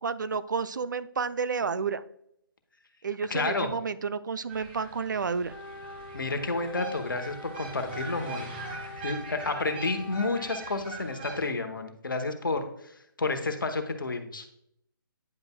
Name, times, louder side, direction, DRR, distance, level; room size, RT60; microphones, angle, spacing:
voice 1, 0.0-2.0 3.0-5.5, right 5 dB, 55° right, 14 dB, 0.4 m, -30 dB
voice 2, 3.3-3.7 6.1-8.5 9.0-12.9 13.2-14.5, left 3 dB, 65° left, 7 dB, 1.0 m, -30 dB
sound 1, 4.5-11.5, right 3 dB, 30° right, 1.1 m, -42 dB
Wind instrument woodwind instrument, 5.5-10.7, left 3 dB, 80° left, 0.6 m, -45 dB
9.5 x 5.2 x 2.2 m, 0.74 s
figure-of-eight pair, 145°, 12 cm